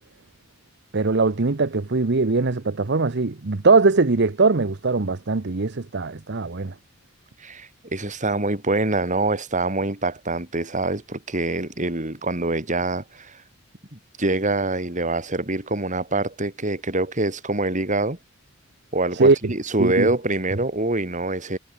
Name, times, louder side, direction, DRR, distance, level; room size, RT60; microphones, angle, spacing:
voice 1, 0.9-6.7 19.1-19.5 19.8-20.1, right 3 dB, 55° right, 0.9 m, -21 dB
voice 2, 7.4-13.4 13.9-18.2 18.9-21.6, right 2 dB, 40° right, 4.5 m, -25 dB
head